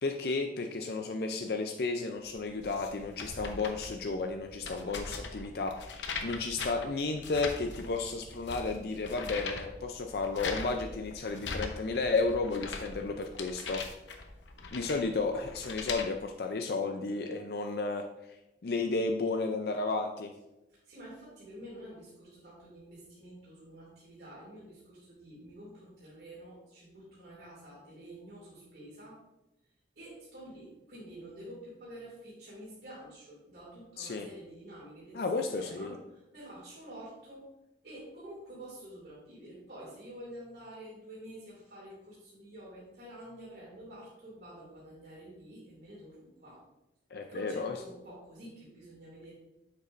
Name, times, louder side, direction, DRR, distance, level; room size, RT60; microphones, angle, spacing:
voice 1, 0.0-13.8 14.7-18.1 18.6-20.3 34.0-34.3 35.1-36.0 47.1-47.7, left 3 dB, 60° left, 4 dB, 0.4 m, -33 dB
sound 1, 2.3-16.1, left 4 dB, 90° left, 0.8 m, -41 dB
voice 2, 20.7-29.2 30.0-35.2 35.5-37.5 37.8-46.6 47.3-49.3, right 1 dB, 65° right, -8 dB, 2.4 m, -49 dB
8.0 x 6.7 x 2.5 m, 0.95 s
head